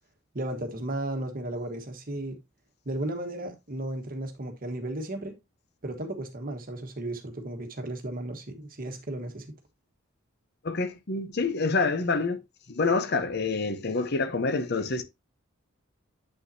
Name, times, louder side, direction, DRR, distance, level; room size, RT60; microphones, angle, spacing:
voice 1, 0.3-2.4 2.8-5.3 5.8-9.5, right 1 dB, 45° right, 1.3 m, -34 dB
voice 2, 10.6-12.4 12.7-15.0, left 3 dB, 50° left, 0.8 m, -27 dB
7.8 x 5.6 x 2.7 m
head